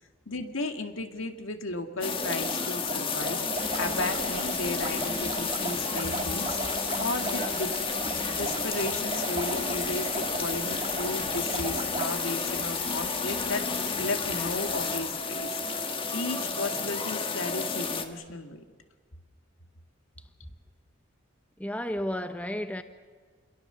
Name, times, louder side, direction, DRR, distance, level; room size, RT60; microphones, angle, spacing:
voice 1, 0.3-3.4 3.8-6.6 7.0-7.7 8.4-13.7 14.0-18.6, left 2 dB, 85° left, 6 dB, 2.1 m, -34 dB
sound 1, 2.0-18.1, left 4 dB, 25° left, 1.5 m, -31 dB
sound 2, 2.2-12.1, right 3 dB, 30° right, 1.8 m, -37 dB
sound 3, 3.5-15.5, right 6 dB, 80° right, 1.6 m, -44 dB
voice 2, 21.6-22.8, left 1 dB, 5° left, 9 dB, 0.8 m, -32 dB
28.0 x 22.0 x 6.9 m, 1.5 s
head